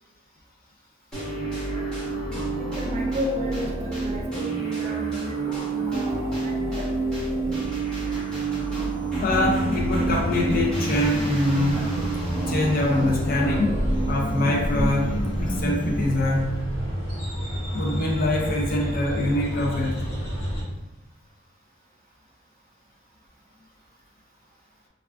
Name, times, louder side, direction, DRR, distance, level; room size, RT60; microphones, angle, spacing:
sound 1, 1.1-16.2, right 3 dB, 5° left, 0.9 m, -29 dB
voice 1, 2.6-6.9, left 1 dB, 40° right, 0 dB, 0.4 m, -34 dB
voice 2, 5.0-5.4 5.7-6.0 9.2-11.8 12.5-13.8 14.1-16.6 17.7-20.1, left 2 dB, 50° left, 0 dB, 0.4 m, -24 dB
sound 2, 9.2-20.6, equal, 80° left, 1.5 m, -30 dB
3.4 x 2.3 x 2.3 m, 1.0 s
head